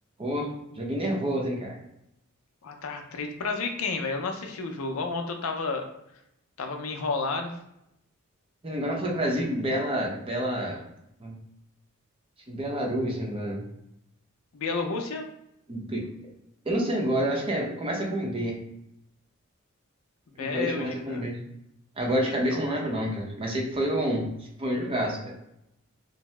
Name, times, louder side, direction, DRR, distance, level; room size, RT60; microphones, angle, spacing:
voice 1, 0.2-0.5 0.8-1.8 8.6-10.8 11.2-11.3 12.5-13.6 15.7-16.1 16.6-18.6 20.4-21.4 22.0-24.3 24.6-25.3, right 1 dB, 25° right, -1 dB, 0.6 m, -28 dB
voice 2, 2.6-5.8 6.6-7.6 14.5-15.3 20.4-21.3 22.5-22.7, left 4 dB, 75° left, 5 dB, 0.5 m, -31 dB
2.7 x 2.0 x 3.1 m, 0.81 s
head